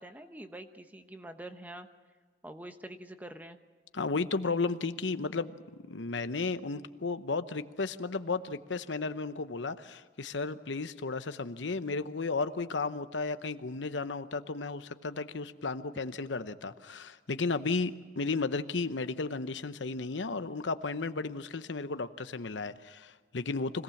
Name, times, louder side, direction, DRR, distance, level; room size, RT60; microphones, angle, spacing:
voice 1, 0.0-1.9 2.4-3.6, right 1 dB, 10° right, 8 dB, 1.0 m, -45 dB
voice 2, 3.9-23.8, left 3 dB, 90° left, 11 dB, 0.9 m, -34 dB
25.0 x 18.0 x 7.2 m, 1.5 s
head